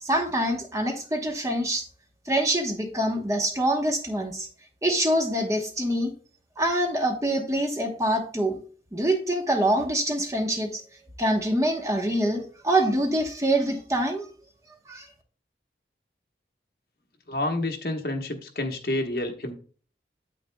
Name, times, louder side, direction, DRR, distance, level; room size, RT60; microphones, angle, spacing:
voice 1, 0.0-1.9 2.3-4.5 4.8-6.1 6.6-8.6 8.9-10.8 11.2-14.3 14.9-15.1, right 1 dB, 20° right, 2 dB, 1.0 m, -25 dB
voice 2, 17.3-19.5, left 1 dB, 55° left, 4 dB, 1.1 m, -29 dB
9.1 x 8.2 x 2.2 m, 0.42 s
head